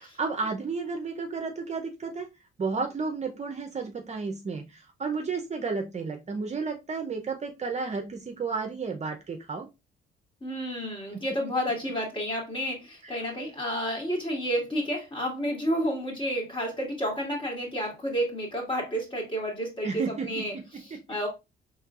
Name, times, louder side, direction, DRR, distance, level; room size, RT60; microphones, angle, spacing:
voice 1, 0.0-2.3 2.6-9.7 11.2-11.3 13.0-13.2 19.8-20.3 20.9-21.0, right 4 dB, 35° right, 0.6 m, -32 dB
voice 2, 10.4-21.3, equal, 25° left, 2.0 m, -30 dB
4.3 x 3.2 x 2.4 m
cardioid pair, 90°, 20 cm